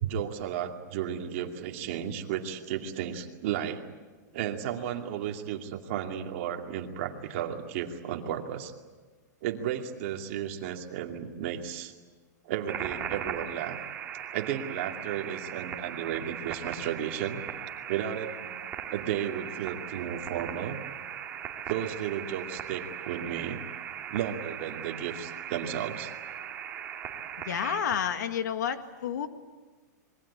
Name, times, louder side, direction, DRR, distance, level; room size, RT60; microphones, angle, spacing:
voice 1, 0.0-3.9 4.3-8.7 9.4-11.9 12.4-13.8 14.3-17.4 17.9-18.5 18.9-20.8 21.7-23.6 24.1-26.1, right 9 dB, 40° right, 3 dB, 2.5 m, -33 dB
sound 1, 12.7-27.8, right 9 dB, 20° right, 2.6 m, -39 dB
voice 2, 27.5-29.3, left 8 dB, 75° left, 8 dB, 2.0 m, -30 dB
27.0 x 22.0 x 8.6 m, 1.4 s
supercardioid pair, 170°, 10 cm